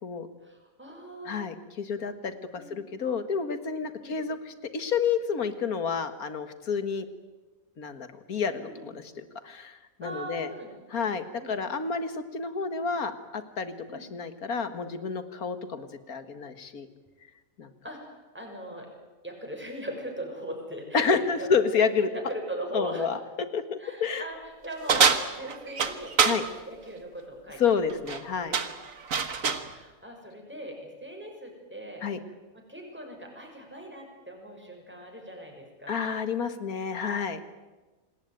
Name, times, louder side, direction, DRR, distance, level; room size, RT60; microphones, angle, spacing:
voice 1, 0.4-1.4 2.5-2.8 4.0-4.2 8.6-8.8 10.0-11.6 13.9-14.1 17.8-18.0 18.3-18.9 19.2-21.8 22.1-23.1 23.8-27.6 28.3-28.6 29.6-32.0 32.7-36.0, right 1 dB, 5° right, 1 dB, 6.1 m, -40 dB
voice 2, 1.3-7.1 7.8-10.5 10.9-16.9 17.6-17.7 20.9-22.1 22.7-24.3 26.2-26.4 27.6-28.6 32.0-32.2 35.9-37.4, left 5 dB, 90° left, 10 dB, 2.1 m, -30 dB
sound 1, 24.9-26.4 27.9-28.2 28.5-29.7, right 6 dB, 70° right, 1.9 m, -24 dB
27.5 x 19.5 x 9.2 m, 1.2 s
omnidirectional pair, 1.5 m